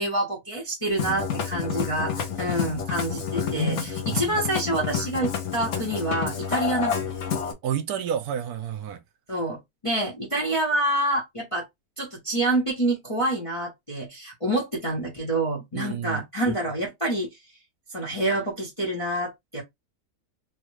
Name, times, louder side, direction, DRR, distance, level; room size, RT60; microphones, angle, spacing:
voice 1, 0.0-7.1 9.3-11.7 12.0-17.3 17.9-19.6, right 1 dB, 25° left, 0.9 m, -27 dB
Musical instrument, 0.9-7.5, left 7 dB, 55° left, 0.9 m, -29 dB
voice 2, 7.6-9.0 15.7-16.2, right 9 dB, 70° right, 1.1 m, -30 dB
3.3 x 2.3 x 3.2 m
omnidirectional pair, 1.8 m